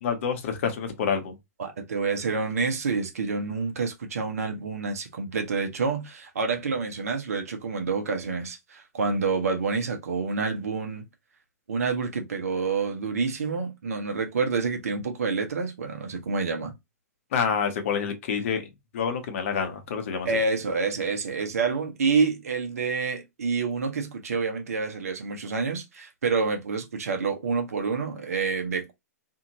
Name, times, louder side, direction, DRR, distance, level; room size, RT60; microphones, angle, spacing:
voice 1, 0.0-1.3 17.3-18.6 18.9-20.3, left 6 dB, 55° left, 0.9 m, -27 dB
voice 2, 1.6-11.0 11.7-16.7 20.2-28.9, right 4 dB, 70° right, 0.9 m, -28 dB
2.7 x 2.6 x 2.9 m
figure-of-eight pair, 110°, 9 cm